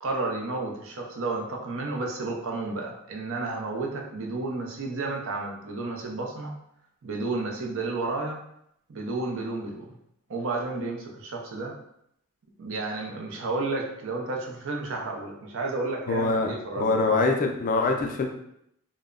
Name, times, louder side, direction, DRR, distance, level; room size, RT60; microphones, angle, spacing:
voice 1, 0.0-6.5 7.0-8.4 8.9-9.9 10.3-11.7 12.6-17.0, right 3 dB, 65° right, 0 dB, 0.5 m, -31 dB
voice 2, 16.1-18.3, left 3 dB, 40° left, 3 dB, 0.3 m, -24 dB
2.1 x 2.0 x 3.6 m, 0.75 s
head